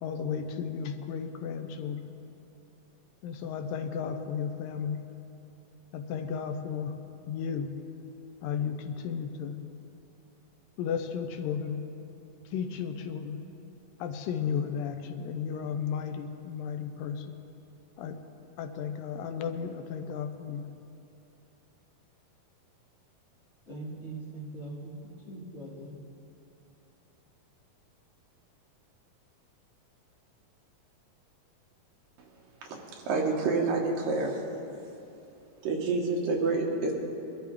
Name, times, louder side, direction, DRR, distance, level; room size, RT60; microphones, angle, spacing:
voice 1, 0.0-2.0 3.2-5.0 5.9-7.0 7.3-7.7 8.4-9.6 10.8-11.8 12.5-13.4 14.0-17.4 18.0-18.2 18.6-20.7, left 7 dB, 85° left, 7 dB, 2.4 m, -34 dB
voice 2, 23.7-25.9, right 2 dB, 20° left, -7 dB, 2.5 m, -41 dB
voice 3, 32.7-34.4 35.6-37.0, right 3 dB, 80° right, -1 dB, 3.1 m, -28 dB
22.5 x 12.5 x 3.5 m, 2.9 s
omnidirectional pair, 3.9 m